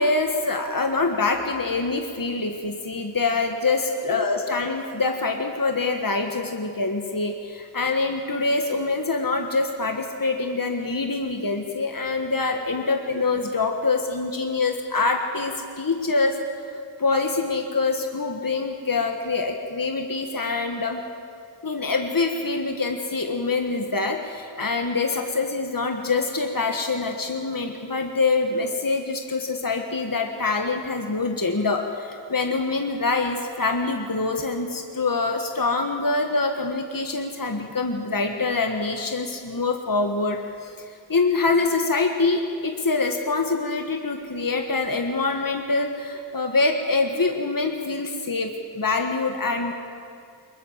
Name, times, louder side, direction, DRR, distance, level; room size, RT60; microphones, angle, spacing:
voice 1, 0.0-16.4 17.0-21.0 21.6-49.7, left 3 dB, 50° left, 4 dB, 1.6 m, -25 dB
23.0 x 20.5 x 7.4 m, 2.4 s
wide cardioid pair, 45°, 45 cm